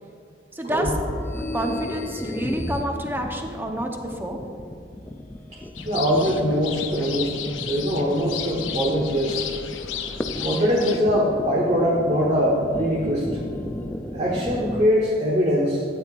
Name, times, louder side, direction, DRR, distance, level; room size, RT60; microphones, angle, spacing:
voice 1, 0.5-1.0 1.5-4.4, right 1 dB, 10° right, 2 dB, 0.9 m, -28 dB
sound 1, 0.7-14.9, left 1 dB, 10° left, 0.4 m, -33 dB
sound 2, 5.7-11.0, left 9 dB, 85° left, 0.6 m, -34 dB
voice 2, 5.8-7.4 7.6-9.4 10.4-13.3 14.1-15.8, equal, 40° right, -4 dB, 1.3 m, -22 dB
12.5 x 9.2 x 2.5 m, 2.5 s
head